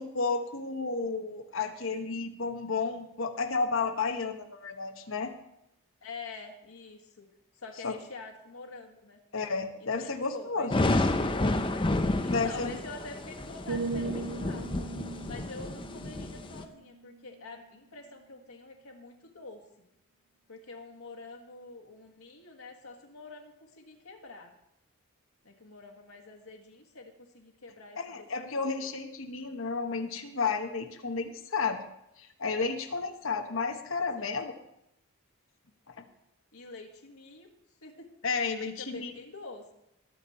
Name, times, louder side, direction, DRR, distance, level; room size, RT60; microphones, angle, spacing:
voice 1, 0.0-5.3 7.8-7.9 9.3-10.7 12.3-12.8 28.0-31.8 32.2-34.5 35.9-36.0 38.2-39.1, left 4 dB, 65° left, 5 dB, 1.2 m, -32 dB
voice 2, 6.0-7.3 7.5-9.2 9.8-11.4 12.2-14.7 15.2-19.6 20.5-24.5 25.4-28.3 28.6-28.8 34.2-34.4 36.5-37.5 37.8-38.1 38.8-39.7, left 3 dB, 85° left, 3 dB, 1.7 m, -46 dB
sound 1, 10.7-16.6, left 2 dB, 25° left, 0.7 m, -30 dB
sound 2, 13.7-17.7 18.0-18.3, right 3 dB, 75° right, 0.6 m, -39 dB
20.0 x 7.1 x 4.3 m, 0.83 s
head